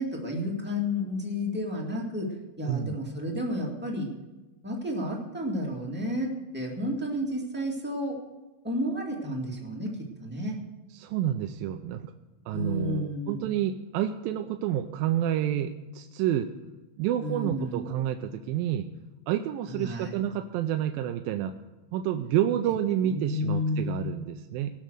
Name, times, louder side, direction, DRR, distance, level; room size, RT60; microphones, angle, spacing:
voice 1, 0.0-2.3 2.6-4.1 4.6-8.1 8.6-9.9 10.2-10.6 12.5-13.5 17.2-17.8 19.7-20.2 23.1-24.1, left 1 dB, 5° right, -2 dB, 1.3 m, -31 dB
voice 2, 2.7-3.0 10.9-12.1 12.5-16.5 17.0-18.9 19.3-21.5 21.9-24.7, right 11 dB, 90° right, 7 dB, 2.4 m, -29 dB
18.5 x 6.7 x 6.4 m, 1.1 s
omnidirectional pair, 4.0 m